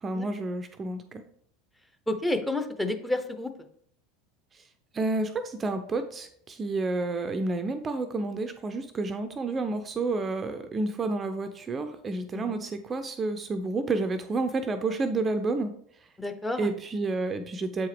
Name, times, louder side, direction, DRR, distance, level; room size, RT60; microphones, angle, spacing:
voice 1, 0.0-1.2 4.5-4.6 4.9-15.7 16.6-17.9, right 3 dB, 25° right, 8 dB, 0.4 m, -30 dB
voice 2, 2.1-3.5 12.3-12.6 16.2-16.7, left 1 dB, 5° left, 7 dB, 0.7 m, -30 dB
7.3 x 4.6 x 3.3 m, 0.65 s
figure-of-eight pair, 75°, 0 cm